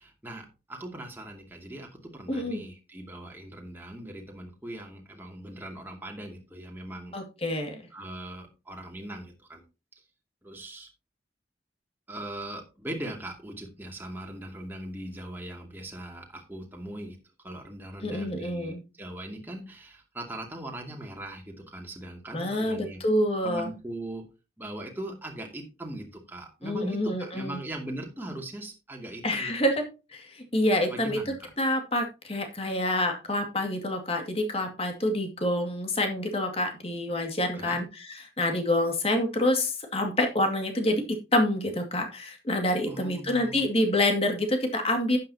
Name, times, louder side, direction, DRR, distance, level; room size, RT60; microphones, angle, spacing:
voice 1, 0.0-7.1 7.9-9.6 10.4-10.9 12.1-17.2 17.4-23.1 23.4-24.2 24.6-29.5 30.9-31.5 37.5-37.8 42.9-43.6, right 1 dB, 10° right, 0 dB, 2.5 m, -40 dB
voice 2, 2.3-2.6 7.1-7.8 18.0-18.8 22.3-23.7 26.6-27.6 29.2-45.2, left 1 dB, 35° left, 4 dB, 2.2 m, -27 dB
11.5 x 9.0 x 2.8 m, 0.29 s
head